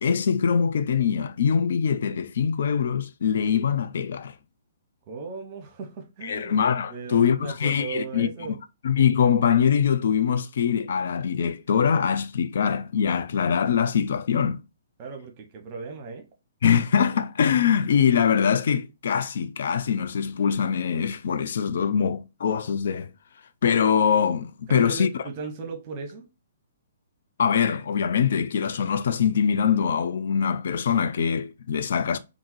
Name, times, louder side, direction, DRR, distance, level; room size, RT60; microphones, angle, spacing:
voice 1, 0.0-4.3 6.2-8.6 8.8-14.6 16.6-23.1 23.6-25.1 27.4-32.2, left 7 dB, 60° left, 0.3 m, -23 dB
voice 2, 5.1-6.6 6.9-8.6 15.0-16.3 24.7-26.3, right 5 dB, 35° right, 0.9 m, -36 dB
3.7 x 2.5 x 3.0 m
figure-of-eight pair, 125°, 0 cm